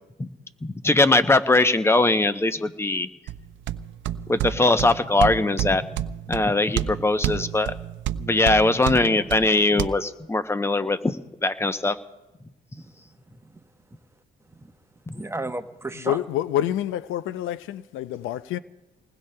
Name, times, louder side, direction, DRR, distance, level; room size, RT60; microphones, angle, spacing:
voice 1, 0.6-3.1 4.3-5.8 6.3-7.7 8.2-11.2 11.4-12.0 15.1-15.2, left 2 dB, 10° left, 0.6 m, -21 dB
sound 1, 3.3-9.9, right 11 dB, 70° right, 0.5 m, -30 dB
voice 2, 12.8-13.6 13.9-14.0 14.5-16.2, right 2 dB, 15° right, 0.9 m, -36 dB
voice 3, 16.1-18.6, left 12 dB, 85° left, 0.5 m, -27 dB
27.5 x 19.5 x 2.2 m
cardioid pair, 90°, 20 cm